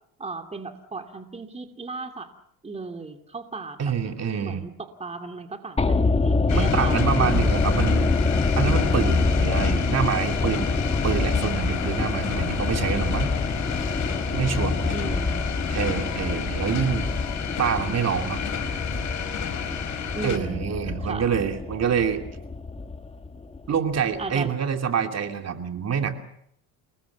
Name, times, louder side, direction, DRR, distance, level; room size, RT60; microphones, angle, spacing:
voice 1, 0.2-2.3 2.6-3.8 4.4-7.5 14.9-15.5 20.1-20.6 21.0-21.2 23.3-23.4 24.2-24.5, right 3 dB, 15° right, 5 dB, 2.6 m, -35 dB
voice 2, 3.8-4.6 6.5-8.2 8.6-10.7 11.0-13.3 14.3-15.0 15.7-17.1 17.6-18.4 20.2-22.2 23.7-26.2, right 7 dB, 45° right, 5 dB, 2.9 m, -26 dB
sound 1, 5.8-24.0 24.2-24.3, left 3 dB, 15° left, 1.9 m, -26 dB
sound 2, 6.5-20.4, left 8 dB, 50° left, 4.7 m, -31 dB
28.5 x 21.0 x 7.2 m, 0.70 s
cardioid pair, 110°, 37 cm